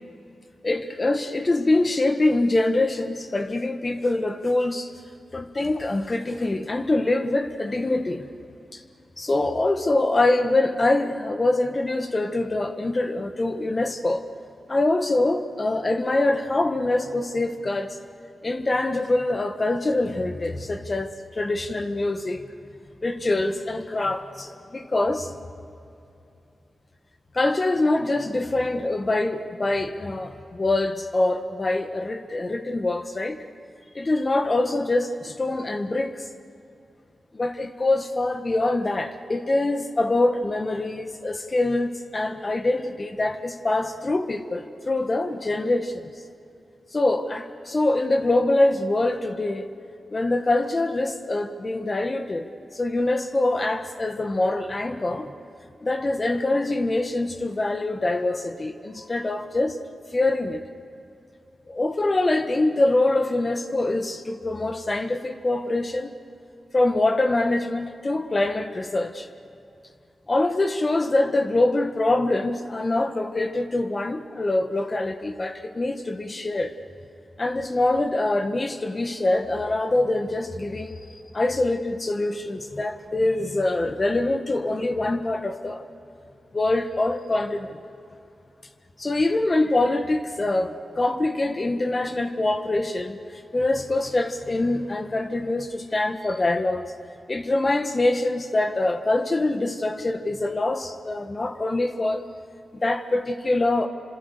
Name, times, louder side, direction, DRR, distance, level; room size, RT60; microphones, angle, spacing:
voice 1, 0.6-4.9 5.3-8.2 8.7-8.8 9.2-14.2 14.7-18.0 18.4-22.4 23.0-25.3 27.3-33.4 33.9-36.3 37.3-46.0 46.9-49.7 50.1-52.5 52.7-55.3 55.8-59.8 60.1-60.6 61.7-66.1 66.7-69.3 70.3-76.7 77.4-85.8 86.5-87.8 89.0-93.2 93.5-96.9 97.3-102.2 102.8-103.9, left 2 dB, 40° left, 7 dB, 1.7 m, -24 dB
29.0 x 26.0 x 6.8 m, 2.7 s
cardioid pair, 45°, 0 cm